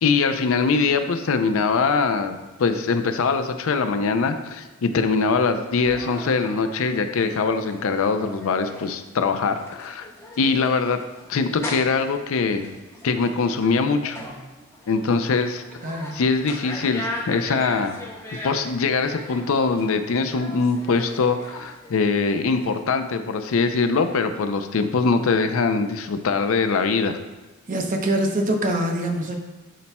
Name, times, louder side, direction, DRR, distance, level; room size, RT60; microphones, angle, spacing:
voice 1, 0.0-2.3 2.6-10.1 10.4-11.0 11.3-12.7 13.0-14.2 14.9-15.6 16.1-18.0 18.3-27.2, left 4 dB, 65° left, 8 dB, 0.4 m, -22 dB
sound 1, 5.8-22.8, left 1 dB, 10° left, 0.9 m, -39 dB
voice 2, 15.8-16.2 27.7-29.4, right 1 dB, 35° right, 2 dB, 0.8 m, -24 dB
11.5 x 4.2 x 2.2 m, 1.2 s
head